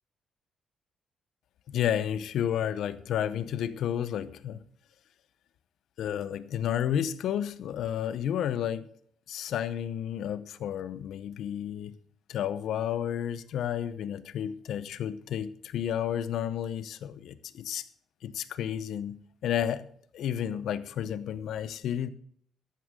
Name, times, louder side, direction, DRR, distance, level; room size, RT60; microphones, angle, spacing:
voice 1, 1.7-4.6 6.0-8.9 9.3-12.0 12.3-17.9 18.2-19.9 20.1-22.1, left 10 dB, 75° left, 0.8 m, -31 dB
14.5 x 11.0 x 3.8 m
cardioid pair, 90°, 0 cm